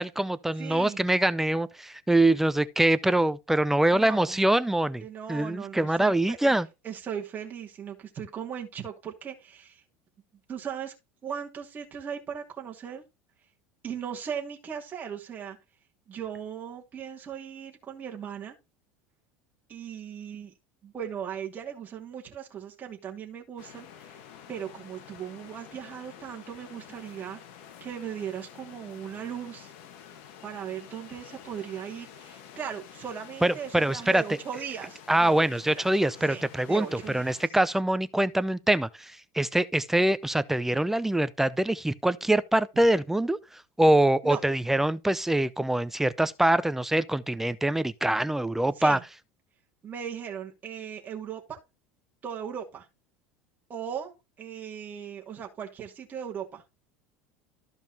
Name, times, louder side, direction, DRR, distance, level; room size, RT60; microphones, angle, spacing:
voice 1, 0.0-5.0 5.3-6.7 33.4-34.2 35.1-49.0, right 1 dB, 5° right, 0.5 m, -24 dB
voice 2, 0.6-1.0 3.9-4.4 5.0-6.6 6.8-9.8 10.5-10.9 11.2-13.0 13.8-15.6 16.1-18.6 19.7-20.5 20.8-24.2 24.5-27.4 27.8-29.7 30.4-35.8 36.3-37.3 44.2-44.4 48.8-49.0 49.8-51.6 52.2-52.9 53.7-56.6, right 8 dB, 25° right, 2.6 m, -38 dB
sound 1, 23.6-37.5, left 9 dB, 70° left, 1.7 m, -49 dB
14.0 x 5.2 x 2.9 m
supercardioid pair, 135°, 7 cm